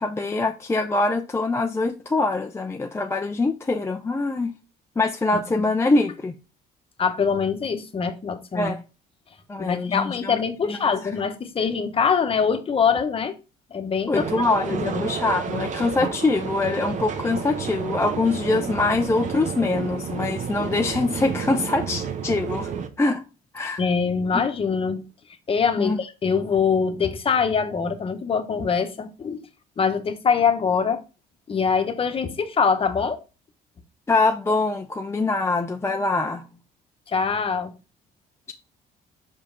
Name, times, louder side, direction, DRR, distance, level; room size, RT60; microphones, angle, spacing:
voice 1, 0.0-4.5 5.0-6.3 8.5-8.8 9.5-10.9 14.1-22.7 23.0-23.2 23.5-23.8 24.3-24.4 25.8-26.0 34.1-36.4, left 3 dB, 15° left, 0.5 m, -24 dB
voice 2, 5.3-5.7 7.0-8.7 9.6-13.3 13.7-14.3 14.7-15.0 23.8-25.0 25.5-29.5 29.8-31.0 31.5-33.2 37.1-37.7, left 6 dB, 35° left, 1.0 m, -23 dB
sound 1, 14.1-22.9, right 6 dB, 45° right, 0.9 m, -30 dB
5.5 x 5.1 x 3.8 m
cardioid pair, 110°, 17 cm